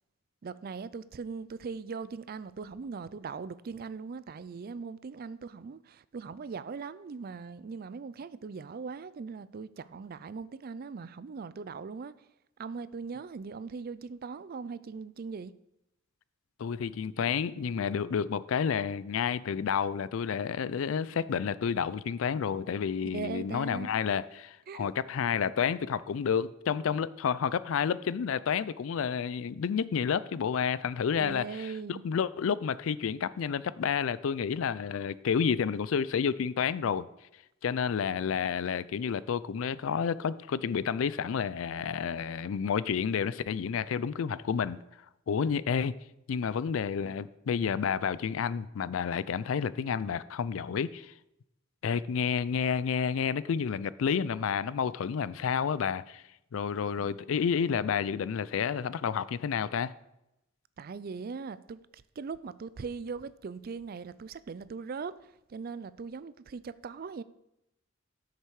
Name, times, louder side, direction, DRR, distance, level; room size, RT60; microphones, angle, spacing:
voice 1, 0.4-12.1 12.6-15.5 23.1-23.9 24.7-24.9 31.2-32.0 57.0-57.2 60.8-67.2, right 5 dB, 45° right, 0.4 m, -40 dB
voice 2, 16.6-37.1 37.6-44.8 45.3-46.0 46.3-51.1 51.8-56.2 56.5-59.9, left 7 dB, 75° left, 0.4 m, -30 dB
11.0 x 6.7 x 4.8 m
head